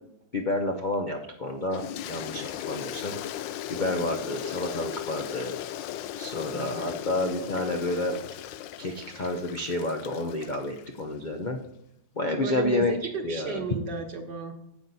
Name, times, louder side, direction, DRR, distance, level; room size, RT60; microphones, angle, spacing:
voice 1, 0.3-3.2 3.7-5.5 6.2-8.2 8.8-11.6 12.2-12.9 13.2-13.6, left 2 dB, 50° left, 3 dB, 0.5 m, -30 dB
Toilet flush, 1.7-11.1, left 12 dB, 80° left, 1.3 m, -37 dB
voice 2, 6.5-7.0 12.4-14.6, right 3 dB, 70° right, 4 dB, 1.9 m, -34 dB
9.9 x 7.8 x 4.1 m, 0.82 s
omnidirectional pair, 2.0 m